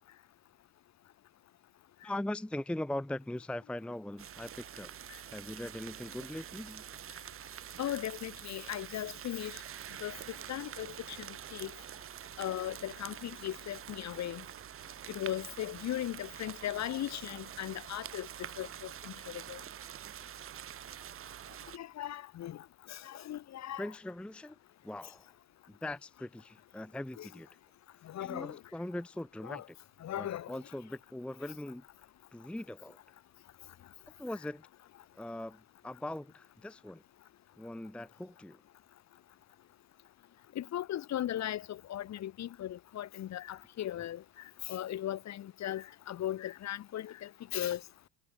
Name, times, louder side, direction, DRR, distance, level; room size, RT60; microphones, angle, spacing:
voice 1, 2.0-4.9 5.3-6.8 23.8-24.6 24.8-25.3 25.7-27.5 28.0-29.8 30.1-31.8 32.3-33.0 34.2-34.7 35.1-37.0 37.6-38.6, left 1 dB, ahead, 1.0 m, -41 dB
sound 1, 4.2-21.8, right 10 dB, 25° right, 1.5 m, -46 dB
voice 2, 7.8-9.6 10.0-10.1 10.5-10.9 11.5-11.7 12.4-14.4 15.1-18.3 18.6-19.1 19.5-19.6 21.7-22.6 22.9-23.8 27.2-27.3 28.1-28.6 29.5-29.6 30.0-30.5 40.6-44.2 44.7-47.8, left 12 dB, 35° left, 1.9 m, -37 dB
supercardioid pair, 135°, 48 cm